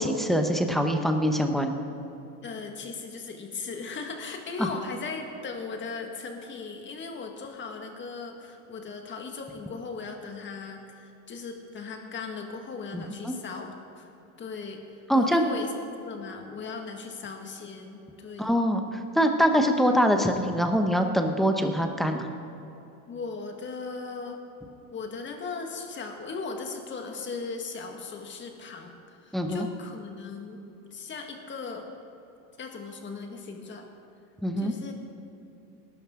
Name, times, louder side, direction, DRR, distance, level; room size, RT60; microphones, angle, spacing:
voice 1, 0.0-1.7 4.6-4.7 12.9-13.3 15.1-15.4 18.4-22.3 29.3-29.7 34.4-34.7, equal, ahead, 4 dB, 0.9 m, -24 dB
voice 2, 2.4-14.1 14.4-15.7 16.0-18.5 23.1-24.4 24.9-30.6 30.9-31.9 32.6-33.8 34.6-34.9, left 4 dB, 25° left, 3 dB, 1.7 m, -38 dB
20.0 x 12.0 x 3.7 m, 3.0 s
supercardioid pair, 135°, 46 cm